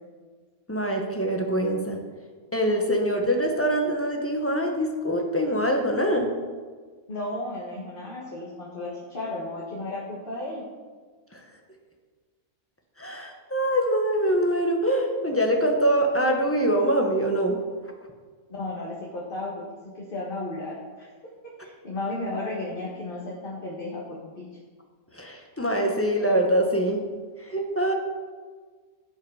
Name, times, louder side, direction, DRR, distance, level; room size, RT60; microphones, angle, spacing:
voice 1, 0.7-2.0 2.5-6.3 11.3-11.4 13.0-17.6 25.1-27.0 27.5-27.9, right 1 dB, 10° left, 2 dB, 1.1 m, -24 dB
voice 2, 7.1-10.6 18.5-19.6 19.9-21.1 21.4-24.5, left 2 dB, 35° left, -4 dB, 1.7 m, -34 dB
16.0 x 5.7 x 4.9 m, 1.5 s
omnidirectional pair, 1.6 m